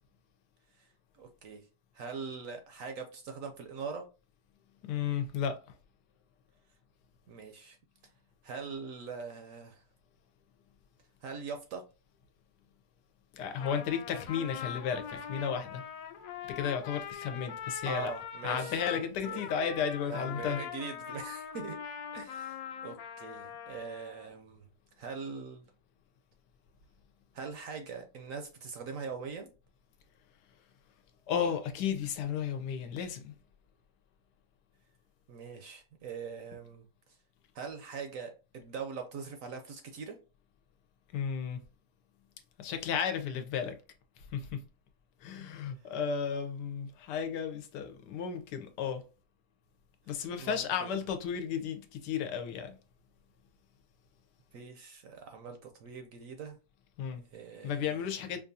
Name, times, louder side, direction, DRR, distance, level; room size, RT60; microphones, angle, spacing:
voice 1, 1.2-1.7 1.9-4.1 7.3-7.8 8.4-9.8 11.2-11.8 17.9-19.5 20.1-21.8 22.1-24.7 25.0-25.6 27.3-29.5 35.3-36.9 37.5-40.2 50.4-50.9 54.5-56.6 57.3-58.1, right 5 dB, 70° right, 0.8 m, -42 dB
voice 2, 4.8-5.8 13.3-15.8 16.5-18.1 18.4-20.6 31.3-33.3 41.1-41.6 42.6-43.7 44.3-44.6 45.2-49.0 50.1-52.8 57.0-57.2 57.6-58.4, left 7 dB, 85° left, 1.2 m, -33 dB
Trumpet, 13.4-24.3, left 8 dB, 70° left, 0.9 m, -42 dB
5.1 x 2.4 x 2.6 m
omnidirectional pair, 1.8 m